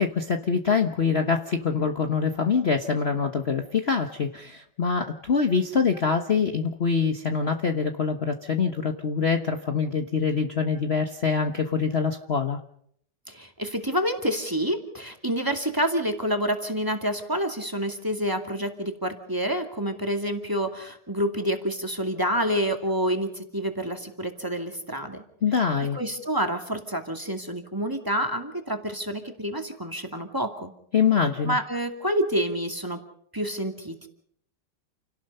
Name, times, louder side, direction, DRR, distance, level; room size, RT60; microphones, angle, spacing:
voice 1, 0.0-12.6 25.4-26.0 30.9-31.6, left 5 dB, 40° left, 6 dB, 1.3 m, -24 dB
voice 2, 13.3-25.2 25.9-30.7 31.4-33.0 33.3-34.1, equal, 10° right, 5 dB, 2.4 m, -28 dB
29.5 x 18.0 x 5.5 m, 0.67 s
omnidirectional pair, 1.9 m